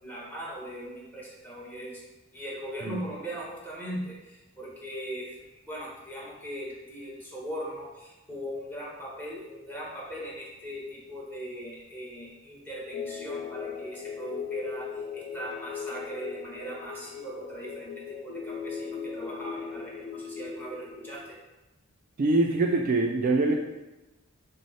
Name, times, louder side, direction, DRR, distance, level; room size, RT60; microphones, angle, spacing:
voice 1, 0.0-21.4, right 1 dB, 10° left, -6 dB, 1.1 m, -39 dB
sound 1, 12.9-21.2, left 6 dB, 85° left, 0.5 m, -38 dB
voice 2, 22.2-23.6, right 2 dB, 40° right, 2 dB, 0.3 m, -24 dB
6.2 x 2.1 x 4.1 m, 1.0 s
head